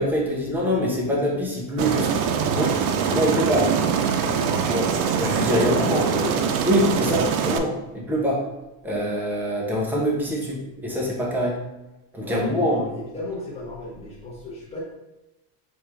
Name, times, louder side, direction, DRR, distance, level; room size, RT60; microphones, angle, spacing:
voice 1, 0.0-2.1 2.5-2.7 3.1-3.7 4.6-4.9 5.2-6.0 6.6-8.4 8.8-11.6 12.1-12.8, equal, 5° right, -3 dB, 0.4 m, -24 dB
Aircraft, 1.8-7.6, right 6 dB, 85° right, 0.7 m, -23 dB
voice 2, 3.1-3.4 5.1-6.3 12.2-14.8, left 3 dB, 15° left, -5 dB, 1.1 m, -33 dB
4.7 x 3.0 x 3.3 m, 1.0 s
cardioid pair, 170°, 46 cm